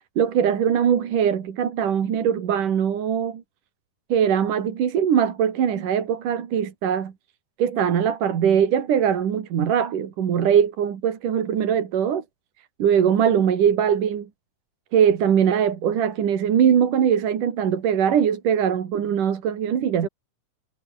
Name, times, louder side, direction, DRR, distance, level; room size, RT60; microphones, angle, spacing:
voice 1, 0.2-3.4 4.1-7.1 7.6-12.2 12.8-14.3 14.9-20.1, right 8 dB, 75° right, 3.9 m, -21 dB
omnidirectional pair, 3.8 m